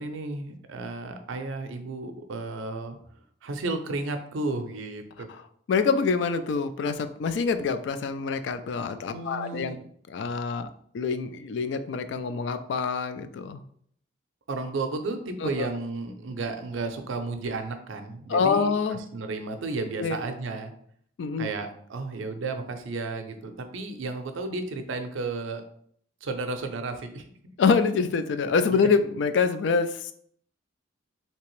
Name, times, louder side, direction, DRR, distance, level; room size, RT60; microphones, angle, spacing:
voice 1, 0.0-3.0 3.4-5.3 9.1-9.8 14.5-20.7 21.4-25.6 26.2-27.2 28.7-28.9, right 3 dB, 85° right, 7 dB, 0.5 m, -33 dB
voice 2, 5.7-9.8 10.1-10.7 10.9-13.6 15.4-15.7 18.3-19.0 20.0-20.2 21.2-21.5 27.6-30.1, left 5 dB, 65° left, 11 dB, 0.3 m, -26 dB
3.3 x 2.9 x 3.1 m, 0.64 s
head